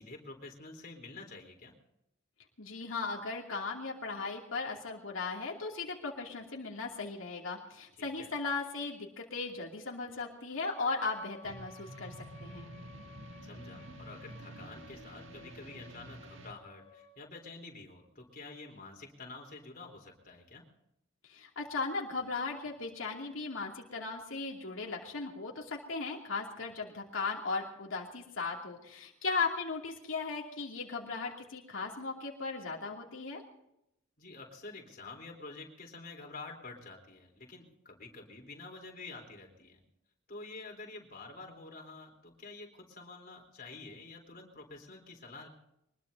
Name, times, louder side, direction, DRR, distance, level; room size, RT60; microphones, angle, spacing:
voice 1, 0.0-1.7 8.0-8.3 13.4-20.6 34.2-39.8 40.3-45.5, left 3 dB, 45° left, 1 dB, 3.8 m, -48 dB
voice 2, 2.6-12.1 12.4-12.7 21.3-33.4, left 4 dB, 90° left, -1 dB, 2.7 m, -37 dB
Wind instrument woodwind instrument, 10.6-17.2, left 4 dB, 30° left, 2.5 m, -56 dB
sound 1, 11.4-16.5, right 2 dB, 75° right, 1.6 m, -49 dB
24.0 x 20.5 x 2.8 m, 0.81 s
head